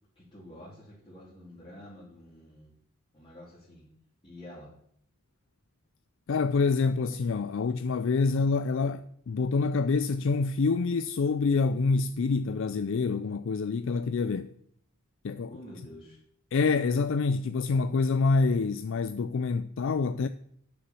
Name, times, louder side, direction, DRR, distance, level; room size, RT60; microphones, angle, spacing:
voice 1, 0.1-2.7 3.1-3.9 4.2-4.7 15.5-16.2, left 1 dB, 25° left, 2.9 m, -48 dB
voice 2, 6.3-14.5 15.2-15.6 16.5-20.3, left 4 dB, 60° left, 0.4 m, -26 dB
9.6 x 6.9 x 6.9 m
head